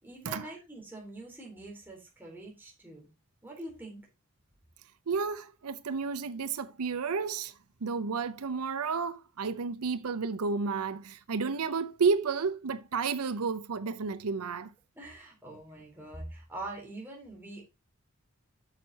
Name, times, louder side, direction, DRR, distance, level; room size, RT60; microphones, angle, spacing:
voice 1, 0.0-3.1 3.4-4.0 15.0-17.7, right 1 dB, 10° right, 4.0 m, -44 dB
voice 2, 5.1-14.7, right 5 dB, 85° right, 0.6 m, -31 dB
9.2 x 6.3 x 4.0 m
head